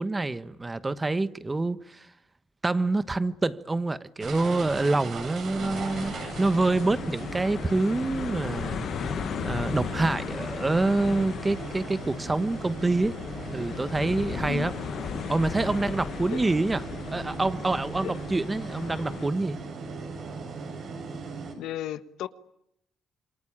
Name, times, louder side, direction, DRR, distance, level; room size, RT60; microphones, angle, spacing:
voice 1, 0.0-2.1 2.6-8.8 9.4-13.2 13.5-14.7 15.3-16.8 17.1-19.6, right 2 dB, 20° right, 1.2 m, -26 dB
sound 1, 4.2-21.5, right 4 dB, 60° right, 7.6 m, -38 dB
voice 2, 5.5-5.9 14.4-14.8 16.3-16.4 18.0-18.1 21.6-22.3, left 12 dB, 85° left, 1.3 m, -35 dB
sound 2, 5.7-19.3, left 9 dB, 65° left, 1.0 m, -36 dB
27.5 x 24.0 x 8.8 m
cardioid pair, 90°, 0 cm